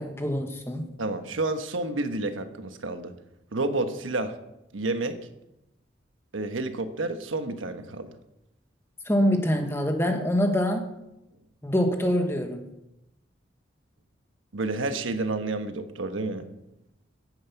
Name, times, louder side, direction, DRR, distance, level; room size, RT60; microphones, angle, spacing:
voice 1, 0.0-0.9 9.0-10.9 11.6-12.7, equal, 15° left, 5 dB, 1.4 m, -25 dB
voice 2, 1.0-3.1 3.5-4.4 4.7-5.2 6.3-8.1 14.5-16.5, right 2 dB, 90° right, 8 dB, 1.2 m, -30 dB
15.0 x 9.5 x 5.8 m, 0.90 s
head